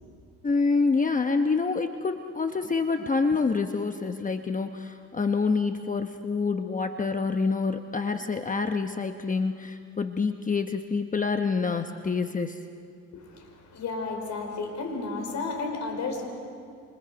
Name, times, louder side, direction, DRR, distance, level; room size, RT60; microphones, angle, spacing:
voice 1, 0.4-12.7, left 4 dB, 25° left, 6 dB, 1.0 m, -27 dB
voice 2, 13.1-16.3, left 3 dB, 70° left, 2 dB, 5.3 m, -33 dB
28.5 x 27.5 x 5.2 m, 2.3 s
cardioid pair, 90°, 30 cm